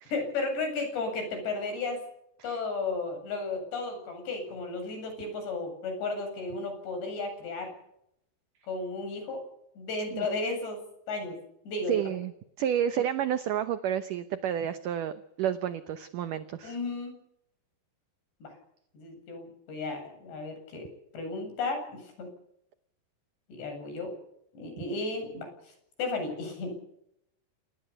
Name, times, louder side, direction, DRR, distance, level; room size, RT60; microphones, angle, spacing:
voice 1, 0.1-2.0 2.4-7.7 8.7-9.4 9.8-10.8 11.1-11.4 11.6-12.0 16.6-17.2 18.4-18.6 18.9-20.9 21.1-22.3 23.5-24.1 24.5-25.5 26.0-26.8, left 3 dB, 75° left, 6 dB, 10.0 m, -34 dB
voice 2, 11.9-12.3 12.6-16.8, right 10 dB, 70° right, 11 dB, 2.0 m, -30 dB
28.0 x 20.0 x 7.0 m, 0.77 s
omnidirectional pair, 4.9 m